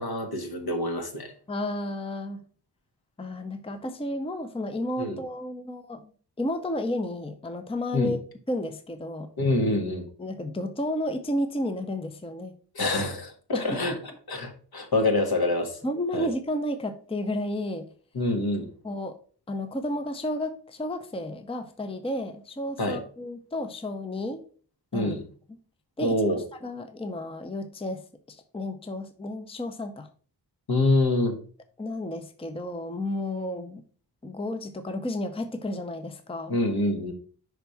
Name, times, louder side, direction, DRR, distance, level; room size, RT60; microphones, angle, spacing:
voice 1, 0.0-1.3 5.0-5.2 7.9-8.2 9.4-10.0 12.7-14.0 14.3-15.8 16.1-16.3 18.1-18.7 22.8-23.0 24.9-25.2 26.0-26.4 30.7-31.4 36.5-37.1, left 2 dB, 60° left, 5 dB, 1.6 m, -26 dB
voice 2, 1.5-2.4 3.2-6.1 6.4-8.2 8.5-9.3 10.2-12.5 13.5-13.8 14.7-14.8 15.8-17.9 18.8-19.2 19.5-24.4 24.9-25.1 26.0-26.2 26.6-30.1 31.8-33.8 34.2-36.6, left 1 dB, 15° left, 9 dB, 0.6 m, -32 dB
5.8 x 3.5 x 5.6 m, 0.43 s
cardioid pair, 65°, 41 cm